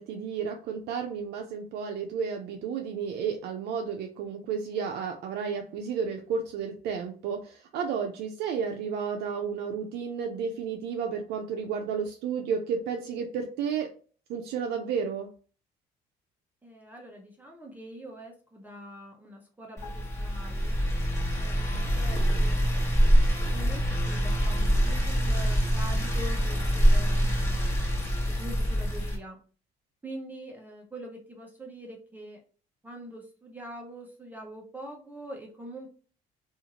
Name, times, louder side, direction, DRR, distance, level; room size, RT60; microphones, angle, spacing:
voice 1, 0.0-13.9 14.3-15.3, right 6 dB, 75° right, 3 dB, 0.4 m, -32 dB
voice 2, 16.6-20.8 21.4-22.6 23.4-27.9 28.3-29.4 30.0-32.4 32.8-35.9, right 1 dB, 10° right, 0 dB, 0.6 m, -44 dB
sound 1, 19.8-21.4 21.7-21.9, left 5 dB, 85° left, 1.1 m, -52 dB
sound 2, 19.8-29.2, equal, 15° left, 1.2 m, -25 dB
2.5 x 2.4 x 2.8 m, 0.40 s
cardioid pair, 110°, 17 cm